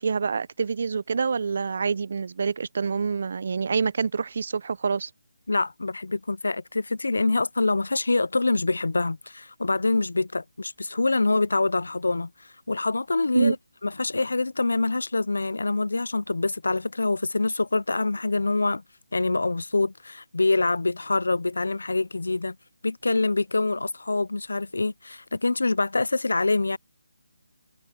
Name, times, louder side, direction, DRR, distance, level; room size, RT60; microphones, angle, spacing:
voice 1, 0.0-5.1 13.3-13.5, right 5 dB, 50° right, 0.6 m, -26 dB
voice 2, 5.5-12.3 12.7-13.6 13.8-18.8 19.1-22.6 22.8-26.8, left 3 dB, 80° left, 0.5 m, -25 dB
figure-of-eight pair, 160°, 0 cm